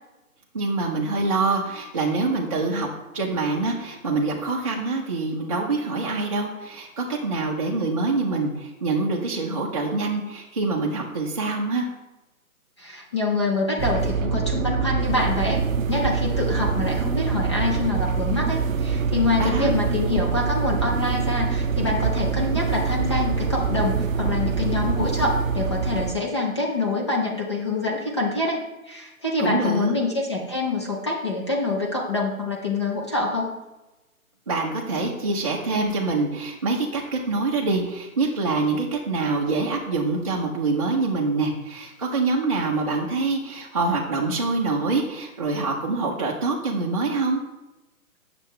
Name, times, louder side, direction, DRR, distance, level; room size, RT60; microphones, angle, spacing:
voice 1, 0.5-2.9 3.1-11.9 19.4-19.7 29.4-29.9 34.5-47.4, right 3 dB, 25° right, -4 dB, 0.7 m, -25 dB
voice 2, 12.8-15.6 15.9-33.5, left 3 dB, 20° left, -2 dB, 0.7 m, -26 dB
sound 1, 13.8-26.2, right 5 dB, 65° right, 0.5 m, -24 dB
8.7 x 6.8 x 3.2 m, 1.1 s
hypercardioid pair, 160°, 44 cm